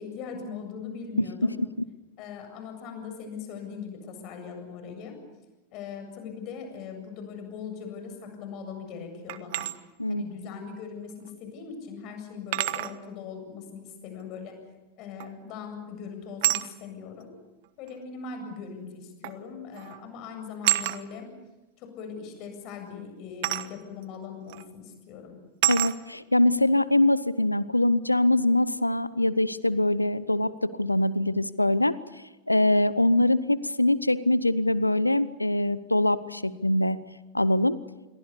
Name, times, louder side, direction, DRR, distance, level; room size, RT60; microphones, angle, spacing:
voice 1, 0.0-1.6 2.2-5.2 5.7-9.7 10.1-14.6 15.0-17.3 17.8-21.3 21.8-25.4, left 6 dB, 40° left, 6 dB, 7.8 m, -40 dB
voice 2, 1.2-1.5 10.0-10.2 25.7-32.0 32.5-37.0 37.3-37.8, left 1 dB, 85° left, 18 dB, 0.8 m, -23 dB
sound 1, 9.3-9.7 11.3-11.4 12.5-13.0 15.2-15.5 16.4-16.7 17.9-18.0 19.2-19.4 19.7-20.0 20.6-21.0 23.4-23.7 24.5-24.6 25.6-26.0, right 18 dB, 50° right, 1.2 m, -27 dB
28.0 x 22.5 x 6.9 m, 1.1 s
figure-of-eight pair, 90°, 0 cm